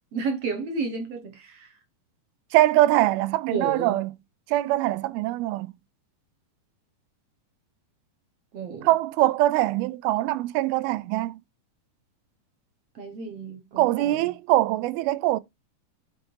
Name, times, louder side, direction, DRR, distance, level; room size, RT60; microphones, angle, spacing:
voice 1, 0.1-1.7 3.5-4.0 8.5-8.9 12.9-14.2, right 4 dB, 65° right, 1.6 m, -32 dB
voice 2, 2.5-4.1 4.5-5.7 8.8-11.4 13.8-15.4, right 16 dB, 90° right, 2.5 m, -23 dB
8.5 x 3.4 x 4.6 m
omnidirectional pair, 4.3 m